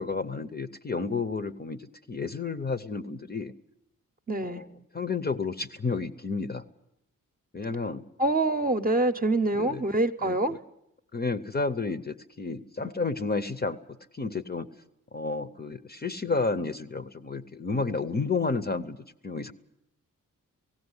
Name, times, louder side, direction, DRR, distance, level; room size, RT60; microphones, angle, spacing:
voice 1, 0.0-3.5 4.4-4.7 4.9-6.6 7.5-8.0 9.5-9.8 10.2-10.6 11.1-13.8 14.1-14.7 15.1-19.0 19.2-19.5, left 4 dB, 30° left, 10 dB, 0.7 m, -31 dB
voice 2, 4.3-4.6 8.2-10.6, right 2 dB, 25° right, 7 dB, 0.8 m, -25 dB
18.0 x 16.5 x 9.7 m, 0.81 s
wide cardioid pair, 130°, 33 cm